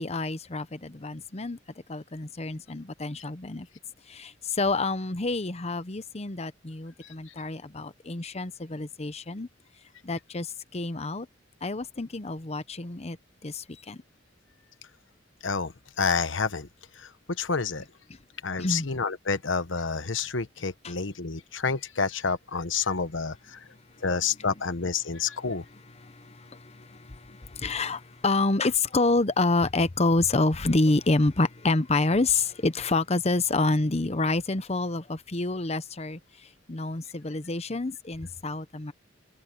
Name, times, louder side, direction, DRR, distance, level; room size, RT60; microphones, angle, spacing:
voice 1, 0.0-1.6 1.9-3.7 4.1-9.5 10.0-11.3 11.6-13.2 13.4-14.0 18.6-18.9 26.0-36.2 36.7-38.9, left 2 dB, 35° left, 0.9 m, -28 dB
voice 2, 15.4-16.7 17.0-17.1 17.4-17.8 18.4-23.6 24.0-25.6, left 5 dB, 80° left, 1.2 m, -29 dB
head